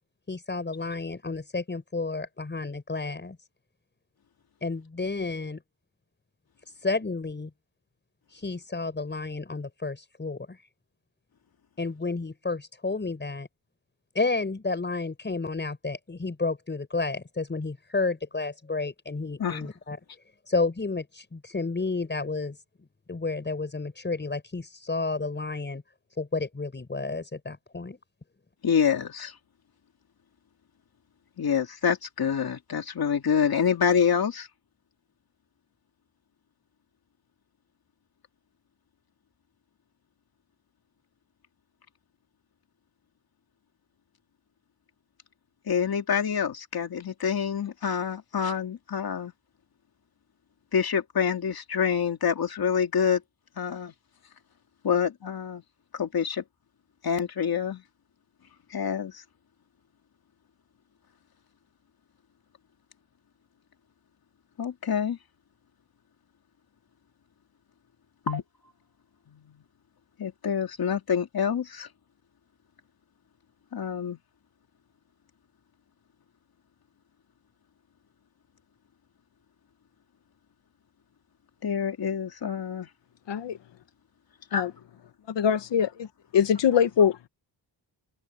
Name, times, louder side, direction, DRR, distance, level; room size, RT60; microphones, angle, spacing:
voice 1, 0.3-3.4 4.6-5.6 6.7-7.5 8.3-10.6 11.8-13.5 14.1-20.0 20.5-22.6 23.1-25.8 26.2-28.0, left 3 dB, 25° left, 6.1 m, -31 dB
voice 2, 28.6-29.4 31.4-34.5 45.7-49.3 50.7-53.2 53.6-53.9 54.8-55.6 55.9-56.4 57.0-57.8 58.7-59.2 64.6-65.2 68.3-68.4 69.3-69.6 70.2-71.9 73.7-74.2 81.6-82.9 84.5-84.7, left 7 dB, 55° left, 2.7 m, -27 dB
voice 3, 85.3-86.1 86.3-87.3, left 8 dB, 80° left, 1.2 m, -23 dB
wide cardioid pair, 160°, 43 cm